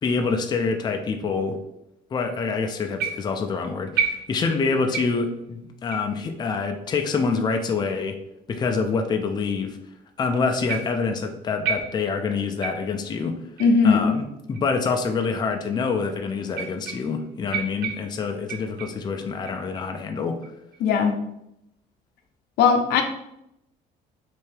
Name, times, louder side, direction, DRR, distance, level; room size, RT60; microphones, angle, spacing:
voice 1, 0.0-1.6 2.1-8.2 8.5-9.8 10.2-13.4 13.8-20.4, left 4 dB, 25° left, 4 dB, 0.4 m, -26 dB
sound 1, 3.0-3.5 4.0-4.6 4.9-5.3 5.9-6.1 6.9-7.0 7.8-7.9 8.8-8.9 10.7-11.1 11.6-12.3 12.6-13.0 13.6-13.8 14.5-14.6 15.5-15.6 16.5-17.2 17.5-19.1 19.5-19.9 20.4-20.8, right 7 dB, 80° right, 0.6 m, -31 dB
voice 2, 13.6-14.2 20.8-21.1 22.6-23.0, left 5 dB, 75° left, 5 dB, 0.6 m, -18 dB
3.3 x 2.6 x 3.3 m, 0.82 s
cardioid pair, 110°, 17 cm